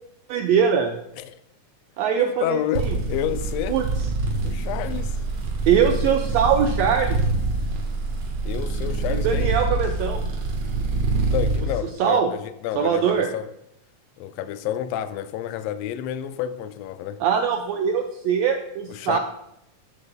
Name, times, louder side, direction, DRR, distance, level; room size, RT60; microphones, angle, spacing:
voice 1, 0.3-1.0 2.0-2.9 3.7-3.9 5.7-7.2 9.1-10.2 12.0-12.3 12.8-13.3 17.2-19.2, right 7 dB, 80° right, 1.5 m, -22 dB
voice 2, 2.2-3.8 4.4-5.2 8.4-9.5 11.3-13.5 14.2-17.2 18.9-19.2, left 11 dB, 85° left, 1.5 m, -30 dB
sound 1, 2.7-11.7, right 3 dB, 60° right, 2.3 m, -25 dB
12.5 x 7.9 x 2.2 m
omnidirectional pair, 3.6 m